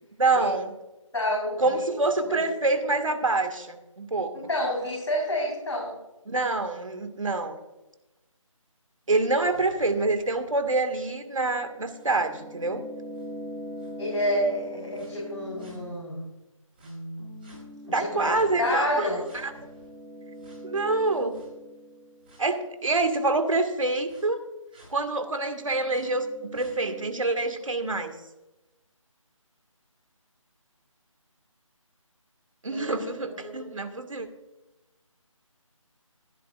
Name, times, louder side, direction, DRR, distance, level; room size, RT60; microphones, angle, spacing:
voice 1, 0.2-0.7 1.6-4.4 6.3-7.6 9.1-12.8 17.9-19.1 19.3-19.5 20.6-21.4 22.4-24.4 24.9-28.1 32.6-34.3, right 2 dB, 70° right, 6 dB, 2.1 m, -26 dB
voice 2, 1.1-1.9 2.2-2.4 4.3-5.9 14.0-16.3 18.0-18.2 18.6-19.2 32.7-33.7, left 1 dB, 55° left, -4 dB, 4.9 m, -29 dB
sound 1, 9.5-16.2 16.8-22.4 22.9-23.0 24.1-24.2 24.7-24.9 25.4-27.1, equal, 15° right, 4.9 m, -43 dB
16.0 x 12.5 x 2.6 m, 0.99 s
figure-of-eight pair, 175°, 17 cm